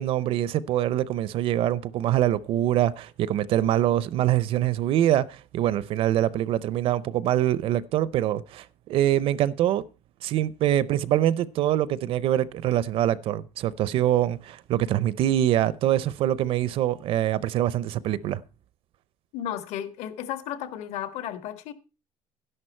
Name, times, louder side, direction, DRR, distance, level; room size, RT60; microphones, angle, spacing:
voice 1, 0.0-9.8 10.2-18.4, right 12 dB, 50° right, 0.6 m, -24 dB
voice 2, 19.3-21.7, left 10 dB, 65° left, 1.7 m, -33 dB
12.0 x 11.0 x 4.4 m
cardioid pair, 155°, 12 cm